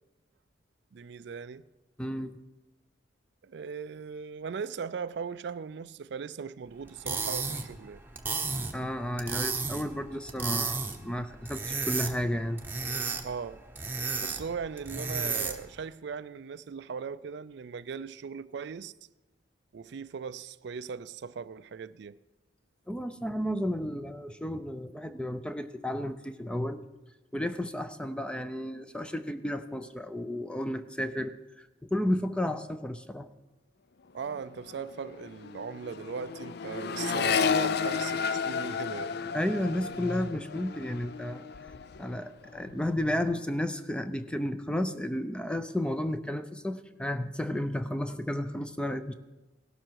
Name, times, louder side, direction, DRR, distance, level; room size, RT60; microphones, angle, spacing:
voice 1, 0.9-1.6 3.4-8.0 13.2-13.6 14.2-18.9 19.7-22.2 34.1-39.2, right 6 dB, 60° right, 0.4 m, -38 dB
voice 2, 2.0-2.3 8.7-12.6 22.9-26.8 27.3-33.3 39.3-41.5 42.0-49.1, left 1 dB, 5° left, 0.5 m, -32 dB
sound 1, 6.9-15.8, right 4 dB, 10° right, 1.0 m, -34 dB
Accelerating revving vroom, 34.2-34.4 34.7-42.2 42.5-43.1, left 6 dB, 55° left, 0.4 m, -32 dB
17.0 x 12.5 x 4.7 m
head